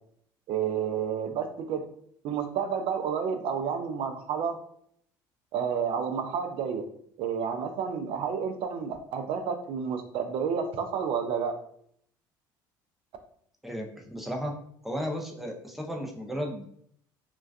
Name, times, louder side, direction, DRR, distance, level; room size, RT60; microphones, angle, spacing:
voice 1, 0.5-1.9 2.2-4.6 5.5-6.9 7.2-11.6, right 7 dB, 55° right, 6 dB, 0.4 m, -30 dB
voice 2, 13.6-14.5 14.8-16.6, equal, ahead, 1 dB, 0.6 m, -34 dB
2.3 x 2.2 x 2.4 m, 0.65 s
hypercardioid pair, 65°, 11 cm